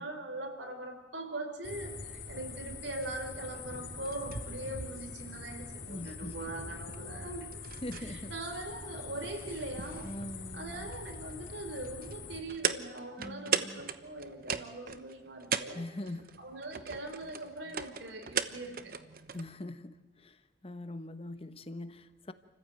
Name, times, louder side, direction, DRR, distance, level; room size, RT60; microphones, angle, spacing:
voice 1, 0.0-7.5 7.9-10.1 10.5-15.8 16.4-19.0, right 2 dB, 75° right, 4 dB, 4.3 m, -41 dB
sound 1, 1.6-12.4, left 4 dB, 80° left, 4.5 m, -44 dB
sound 2, 2.3-19.5, right 7 dB, 50° right, 1.0 m, -40 dB
voice 2, 5.9-6.6 7.8-8.3 10.0-10.9 13.2-13.8 15.7-16.3 17.6-17.7 19.3-22.3, left 1 dB, 30° left, 12 dB, 1.1 m, -42 dB
29.0 x 15.0 x 9.1 m, 1.2 s
head